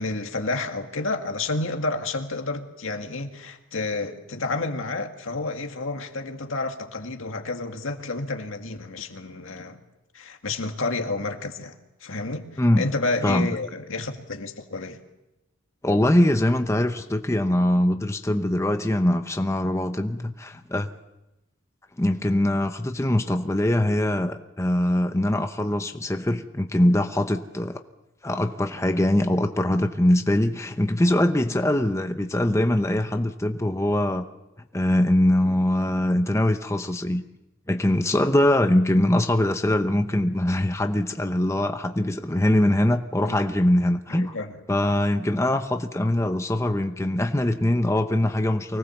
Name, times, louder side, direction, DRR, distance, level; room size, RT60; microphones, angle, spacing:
voice 1, 0.0-9.8 10.1-12.5 12.8-15.0 43.2-43.4 44.1-44.6, left 3 dB, 80° left, 4 dB, 2.1 m, -30 dB
voice 2, 15.8-20.9 22.0-27.8 28.2-34.2 34.7-37.2 37.7-44.3 44.7-48.8, left 1 dB, 15° left, 6 dB, 0.8 m, -22 dB
24.5 x 18.5 x 7.2 m, 0.96 s
head